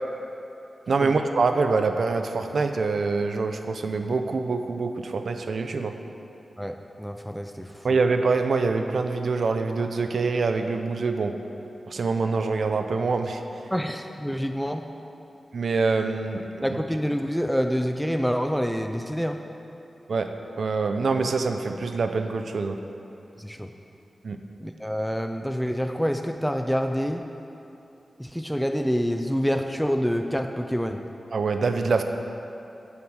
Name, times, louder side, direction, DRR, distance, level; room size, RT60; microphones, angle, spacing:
voice 1, 0.9-5.9 7.8-11.3 11.9-13.4 15.5-16.8 20.1-20.3 20.6-22.8 24.2-24.4 31.3-32.0, right 4 dB, 70° right, 6 dB, 0.7 m, -25 dB
voice 2, 6.6-8.0 13.7-14.8 16.6-19.4 23.4-23.7 24.6-27.2 28.2-31.0, equal, ahead, 5 dB, 0.5 m, -27 dB
11.0 x 7.3 x 8.0 m, 2.8 s
wide cardioid pair, 130°, 0 cm